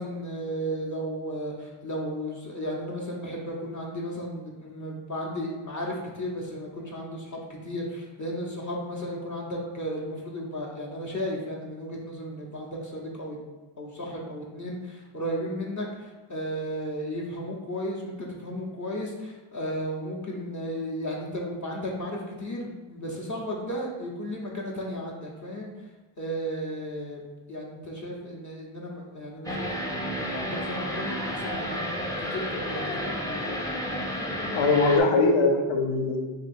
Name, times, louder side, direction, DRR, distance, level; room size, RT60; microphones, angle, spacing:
voice 1, 0.0-13.4 13.8-25.7 26.2-27.2 27.5-31.9 32.2-33.2, equal, 40° left, -3 dB, 0.7 m, -34 dB
sound 1, 29.5-35.0, equal, 10° left, 0.5 m, -31 dB
voice 2, 34.5-36.2, left 3 dB, 70° left, 2 dB, 0.7 m, -21 dB
2.8 x 2.6 x 4.2 m, 1.2 s
cardioid pair, 60°, 48 cm